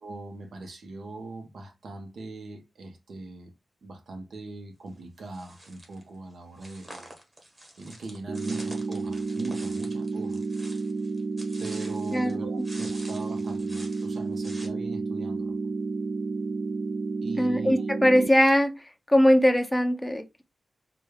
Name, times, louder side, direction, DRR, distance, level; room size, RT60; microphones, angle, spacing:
voice 1, 0.0-3.5 3.8-7.1 7.8-10.4 11.6-15.5 17.2-17.9, right 3 dB, 80° right, 1.1 m, -40 dB
sound 1, 5.3-6.0 6.6-12.3 12.6-14.7, right 1 dB, 25° right, 1.2 m, -47 dB
sound 2, 8.3-18.3, right 3 dB, 55° right, 0.3 m, -31 dB
voice 2, 17.4-18.7 19.1-20.4, equal, 10° left, 0.5 m, -21 dB
4.0 x 2.3 x 3.3 m
wide cardioid pair, 115°, 0 cm